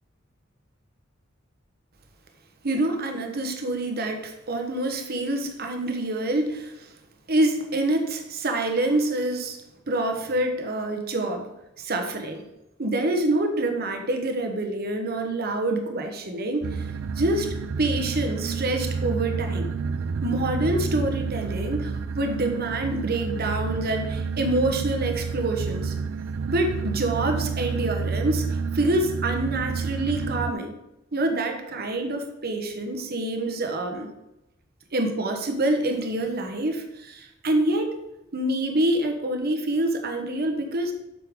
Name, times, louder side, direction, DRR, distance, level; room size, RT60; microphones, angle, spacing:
voice 1, 2.6-6.9 7.3-9.6 9.9-11.5 11.8-12.4 12.8-16.9 17.1-19.7 20.2-25.9 26.5-30.8 31.1-34.1 34.9-38.0 38.3-40.9, right 2 dB, 50° right, 4 dB, 1.1 m, -26 dB
sound 1, 16.6-30.5, right 5 dB, 75° right, 0.4 m, -29 dB
8.2 x 6.7 x 3.7 m, 0.91 s
head